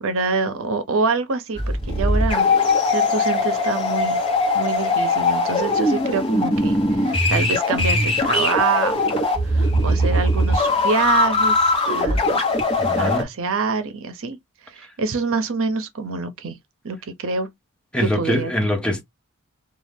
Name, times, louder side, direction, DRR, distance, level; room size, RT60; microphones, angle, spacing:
voice 1, 0.0-2.5 2.8-4.2 4.5-12.4 13.0-14.4 14.7-16.6 16.8-17.5 18.0-18.5, right 4 dB, 65° right, 0.6 m, -26 dB
sound 1, 1.5-13.2, left 2 dB, 25° left, 1.1 m, -20 dB
voice 2, 12.8-13.2 17.9-19.0, equal, 5° left, 0.6 m, -23 dB
2.5 x 2.3 x 3.3 m
head